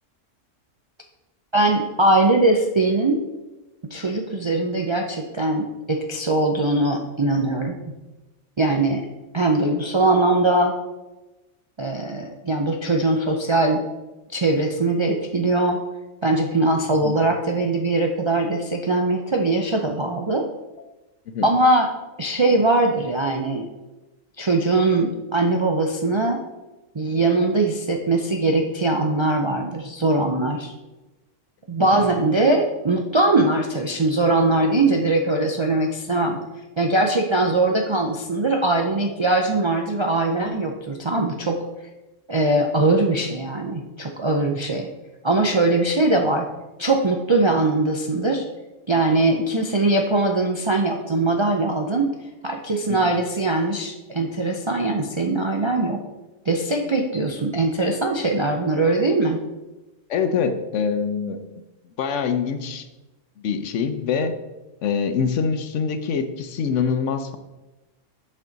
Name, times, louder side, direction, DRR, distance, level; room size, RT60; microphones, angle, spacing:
voice 1, 1.5-3.3 3.9-8.0 8.6-9.1 9.3-10.7 11.8-13.8 14.3-15.8 16.2-20.5 21.4-21.9 22.2-23.7 24.4-26.4 26.9-30.7 31.7-36.4 36.8-41.7 42.3-44.9 45.2-46.5 46.8-48.4 48.9-52.2 52.4-56.0 56.5-59.4, right 2 dB, 45° right, 1 dB, 0.3 m, -21 dB
voice 2, 60.1-61.4 62.0-62.9 63.4-64.3 64.8-67.4, left 6 dB, 75° left, 9 dB, 1.0 m, -25 dB
7.3 x 5.5 x 3.9 m, 1.1 s
omnidirectional pair, 1.3 m